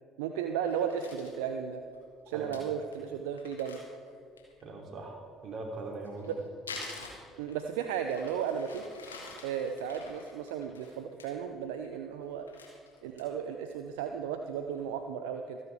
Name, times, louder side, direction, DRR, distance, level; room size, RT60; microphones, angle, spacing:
voice 1, 0.2-1.8 2.3-3.8 6.3-6.4 7.4-8.8 9.4-12.5 13.0-15.6, right 8 dB, 70° right, 6 dB, 0.6 m, -34 dB
Crumpling crinkling, 0.6-1.4 1.9-2.0 2.3-2.4 2.5-2.6 2.9-3.0 3.4-4.6 5.8-7.7 8.1-11.3 11.7-11.9 12.2-13.5 13.9-14.0 14.4-14.8, left 4 dB, 85° left, 1.8 m, -47 dB
voice 2, 2.3-2.6 4.6-6.3, right 3 dB, 45° right, 1 dB, 3.0 m, -41 dB
26.0 x 9.8 x 3.5 m, 2.3 s
figure-of-eight pair, 50°, 0 cm